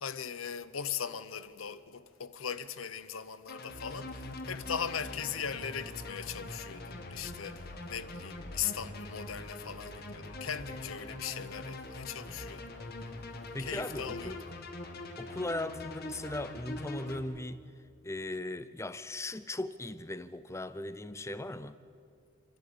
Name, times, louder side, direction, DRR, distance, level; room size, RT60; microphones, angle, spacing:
voice 1, 0.0-12.8 13.6-14.4, left 8 dB, 80° left, 0.9 m, -39 dB
sound 1, 3.5-17.2, left 1 dB, 50° left, 1.8 m, -43 dB
voice 2, 13.5-14.4 15.2-17.6 18.0-21.8, left 2 dB, 15° left, 0.7 m, -38 dB
28.0 x 12.0 x 8.7 m
head